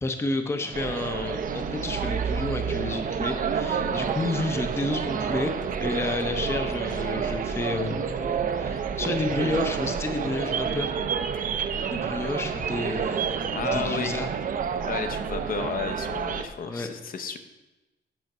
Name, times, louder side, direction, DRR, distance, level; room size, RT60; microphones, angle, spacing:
voice 1, 0.0-5.5 5.8-10.9 11.9-13.4 13.6-14.3 16.6-16.9, left 2 dB, 15° left, 6 dB, 0.6 m, -30 dB
sound 1, 0.7-16.4, right 6 dB, 50° right, 0.6 m, -29 dB
voice 2, 13.5-14.2 14.8-17.4, left 6 dB, 50° left, 8 dB, 0.7 m, -32 dB
9.2 x 5.6 x 6.0 m, 1.1 s
wide cardioid pair, 175°, 18 cm